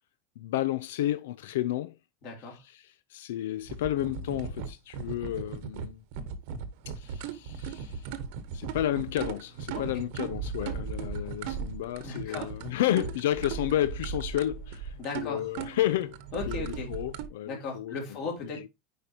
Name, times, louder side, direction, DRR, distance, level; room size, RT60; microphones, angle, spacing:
voice 1, 0.4-2.0 2.5-6.0 6.9-8.1 8.5-18.0, left 13 dB, 85° left, 0.4 m, -31 dB
voice 2, 2.2-2.6 12.0-12.5 15.0-15.5 16.3-16.9 17.4-18.7, left 4 dB, 40° left, 3.4 m, -36 dB
sound 1, 3.6-17.3, right 6 dB, 60° right, 1.0 m, -37 dB
9.1 x 4.9 x 2.8 m
supercardioid pair, 165°, 0 cm